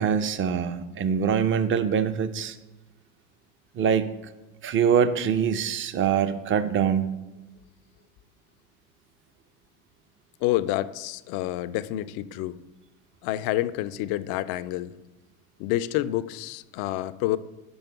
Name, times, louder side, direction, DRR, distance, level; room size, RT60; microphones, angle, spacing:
voice 1, 0.0-2.5 3.8-4.1 4.6-7.0, right 7 dB, 30° right, 12 dB, 0.5 m, -24 dB
voice 2, 10.4-12.6 13.2-14.9 15.6-17.4, left 15 dB, 55° left, 16 dB, 0.5 m, -28 dB
5.4 x 5.2 x 5.6 m, 1.1 s
hypercardioid pair, 80°, 44 cm